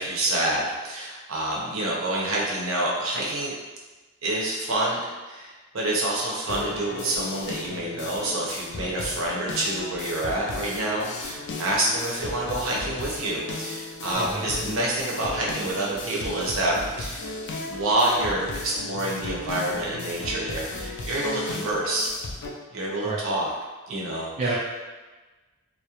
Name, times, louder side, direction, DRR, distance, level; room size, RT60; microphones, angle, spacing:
voice 1, 0.0-3.5 4.2-5.0 5.3-17.3 17.7-22.1 22.7-23.5 23.9-24.6, right 1 dB, 80° right, -4 dB, 0.6 m, -27 dB
sound 1, 6.5-22.5, left 2 dB, 60° left, 0.3 m, -35 dB
voice 2, 14.1-14.7 23.0-23.2 24.4-24.6, right 2 dB, 35° right, -4 dB, 0.3 m, -29 dB
2.3 x 2.0 x 2.8 m, 1.2 s
head